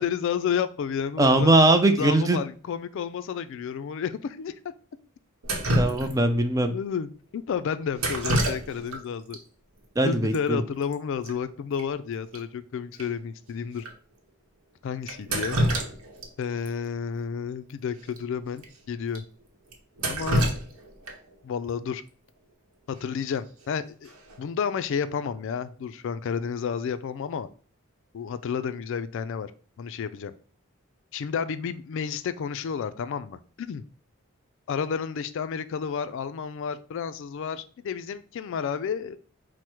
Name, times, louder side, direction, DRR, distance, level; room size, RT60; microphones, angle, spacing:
voice 1, 0.0-1.5 2.0-4.5 6.6-9.4 10.0-13.8 14.8-15.6 16.4-19.2 20.0-20.5 21.4-22.0 22.9-24.1 24.4-27.5 28.1-29.5 29.8-30.3 31.1-33.8 34.7-39.2, left 7 dB, 60° left, 12 dB, 0.3 m, -31 dB
voice 2, 1.2-2.4 5.8-6.7 10.0-10.6, right 2 dB, 15° right, 7 dB, 0.4 m, -20 dB
Drip, 5.4-6.4 8.0-9.0 9.3-9.4 10.3-10.4 10.7-10.9 11.3-11.4 11.8-11.9 12.3-12.4 13.0-13.1 13.8-13.9 15.1-16.3 16.7-16.8 18.1-18.2 18.6-18.7 19.2-19.3 19.7-21.3 23.3-23.6 24.1-24.4, right 1 dB, 85° right, 0.9 m, -27 dB
4.6 x 2.1 x 4.4 m, 0.42 s
head